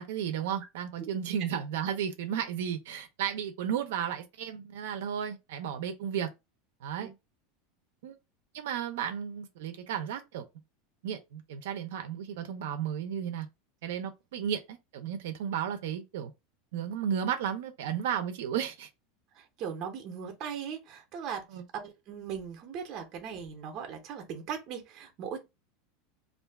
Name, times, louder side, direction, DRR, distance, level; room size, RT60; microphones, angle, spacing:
voice 1, 0.0-6.3 6.8-7.1 8.0-8.1 8.5-10.4 11.0-13.5 13.8-16.3 16.7-18.9 21.5-21.6, right 8 dB, 70° right, 0.5 m, -33 dB
voice 2, 19.4-21.4 21.7-25.4, right 7 dB, 30° right, 0.6 m, -39 dB
2.4 x 2.3 x 3.4 m
supercardioid pair, 180°, 0 cm